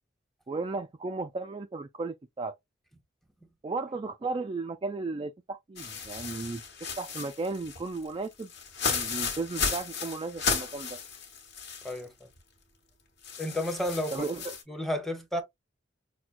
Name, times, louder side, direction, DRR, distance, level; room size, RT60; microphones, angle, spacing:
voice 1, 0.5-2.6 3.6-8.5 8.9-11.0 14.1-14.5, right 3 dB, 25° right, 0.3 m, -35 dB
sound 1, 5.8-12.0 12.4-12.5 13.2-14.6, left 5 dB, 60° left, 1.3 m, -34 dB
voice 2, 13.4-14.2 14.7-15.4, left 1 dB, ahead, 0.9 m, -31 dB
5.9 x 2.2 x 2.5 m
head